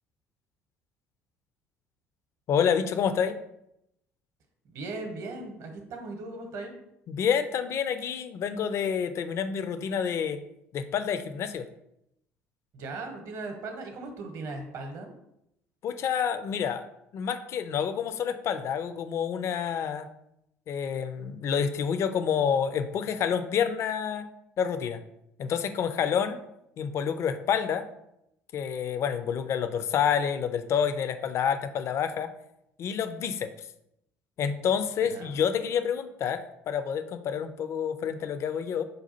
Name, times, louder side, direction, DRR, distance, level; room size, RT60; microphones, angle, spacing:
voice 1, 2.5-3.3 7.1-10.4 10.7-11.6 15.8-16.9 17.1-20.1 20.7-24.3 24.6-25.0 25.4-26.4 26.8-27.8 28.5-32.3 32.8-33.5 34.4-38.8, left 7 dB, 40° left, 10 dB, 0.4 m, -28 dB
voice 2, 4.6-6.7 12.7-15.1 35.0-35.4, right 3 dB, 50° right, 5 dB, 0.8 m, -38 dB
5.2 x 2.3 x 4.1 m, 0.80 s
figure-of-eight pair, 55°, 7 cm